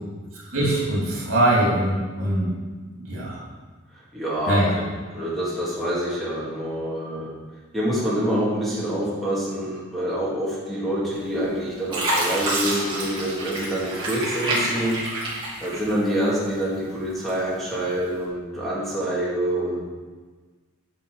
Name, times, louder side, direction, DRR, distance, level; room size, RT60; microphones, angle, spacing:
voice 1, 0.5-2.5 3.1-3.4 4.5-4.7, right 1 dB, 65° right, -5 dB, 3.2 m, -22 dB
voice 2, 4.1-4.6 5.1-7.3 7.7-19.8, right 1 dB, ahead, -8 dB, 2.2 m, -26 dB
Fill (with liquid), 11.1-11.5 11.9-16.3 16.7-17.5 18.1-18.2, right 1 dB, 25° right, 3.1 m, -27 dB
10.0 x 5.7 x 5.1 m, 1.4 s
head